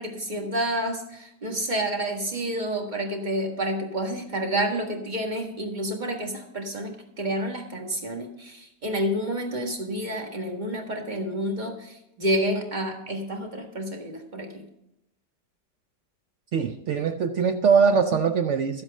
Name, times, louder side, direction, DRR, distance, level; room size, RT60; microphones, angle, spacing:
voice 1, 0.0-14.6, right 1 dB, 25° right, 1.7 m, -29 dB
voice 2, 16.5-18.8, right 6 dB, 75° right, 0.6 m, -22 dB
12.5 x 7.8 x 5.4 m
omnidirectional pair, 1.9 m